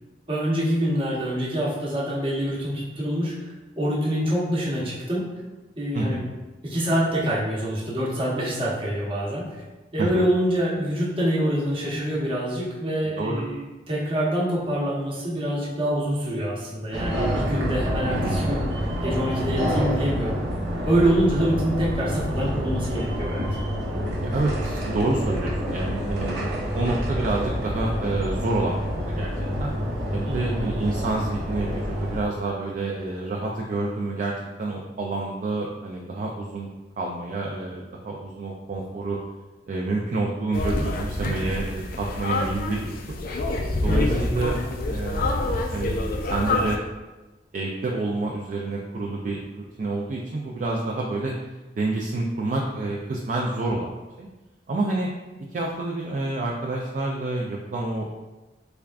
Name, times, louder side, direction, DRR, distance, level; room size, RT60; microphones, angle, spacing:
voice 1, 0.3-3.3 3.8-5.2 5.8-6.3 6.6-9.6 9.9-18.7 19.0-20.4 20.8-23.5 30.3-30.8 43.9-44.3, equal, 30° right, -5 dB, 0.9 m, -25 dB
sound 1, 16.9-32.2, equal, 70° right, 0.8 m, -27 dB
voice 2, 24.2-29.3 29.6-29.7 30.1-34.3 34.6-36.7 37.0-39.2 39.7-43.2 43.8-44.6 44.9-45.9 46.2-46.8 47.5-51.3 51.8-54.3 54.7-55.1 55.5-58.1, right 2 dB, 45° right, -1 dB, 0.3 m, -28 dB
sound 2, 40.5-46.8, left 2 dB, 55° left, 0.4 m, -26 dB
3.4 x 3.4 x 2.3 m, 1.2 s
head